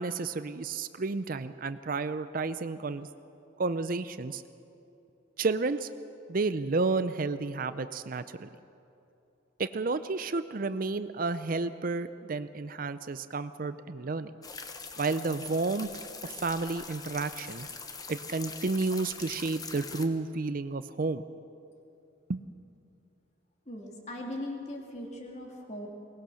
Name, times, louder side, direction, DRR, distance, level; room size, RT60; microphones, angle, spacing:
voice 1, 0.0-3.1 3.6-4.4 5.4-5.9 6.3-8.5 9.6-14.3 15.0-15.9 16.2-17.7 18.1-21.2 22.3-22.4, right 3 dB, 45° right, 12 dB, 0.5 m, -31 dB
sound 1, 14.4-20.1, left 4 dB, 20° left, 1.0 m, -43 dB
voice 2, 23.7-25.9, left 1 dB, 35° left, 1 dB, 2.8 m, -39 dB
22.0 x 19.5 x 6.4 m, 2.8 s
head